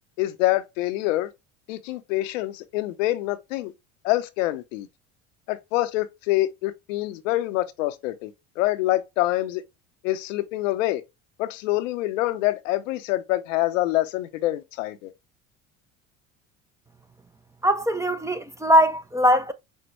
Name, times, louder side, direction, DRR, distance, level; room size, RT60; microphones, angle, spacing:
voice 1, 0.2-1.3 1.7-3.7 4.0-4.9 5.5-9.6 10.0-11.0 11.4-15.1, left 16 dB, 80° left, 0.6 m, -26 dB
voice 2, 17.6-19.5, equal, 10° right, 0.4 m, -20 dB
6.2 x 2.1 x 3.1 m
hypercardioid pair, 80°, 38 cm